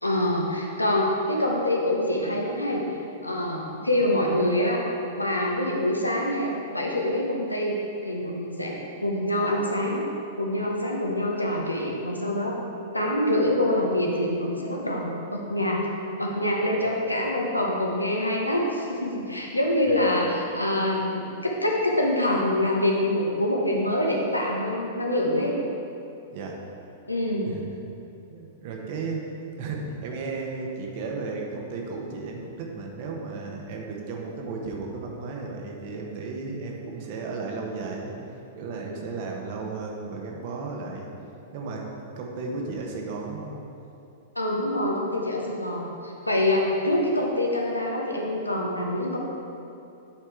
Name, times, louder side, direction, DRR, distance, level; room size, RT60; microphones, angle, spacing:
voice 1, 0.0-2.8 3.2-4.8 5.2-10.0 10.4-12.6 12.9-15.8 16.2-25.5 27.1-27.5 44.3-49.2, left 1 dB, 85° left, -1 dB, 1.0 m, -25 dB
voice 2, 28.3-29.3 29.6-38.1 38.6-41.1 41.5-41.9 42.2-43.5, right 4 dB, 45° right, 0 dB, 1.2 m, -34 dB
9.1 x 4.8 x 4.6 m, 2.7 s
figure-of-eight pair, 100°, 0 cm